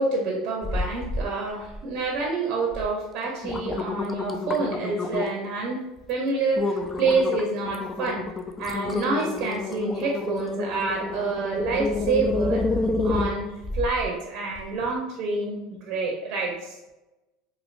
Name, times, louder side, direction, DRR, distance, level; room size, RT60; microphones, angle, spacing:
voice 1, 0.0-5.8 6.1-8.2 8.6-13.5 13.7-16.8, right 3 dB, 60° right, -1 dB, 0.6 m, -27 dB
sound 1, 0.6-1.3 1.6-2.2 2.7-2.9 3.2-5.5 6.0-6.1 6.6-14.1 14.6-14.7, left 3 dB, 20° left, 0.3 m, -29 dB
3.2 x 2.5 x 2.4 m, 1.0 s
supercardioid pair, 105°, 0 cm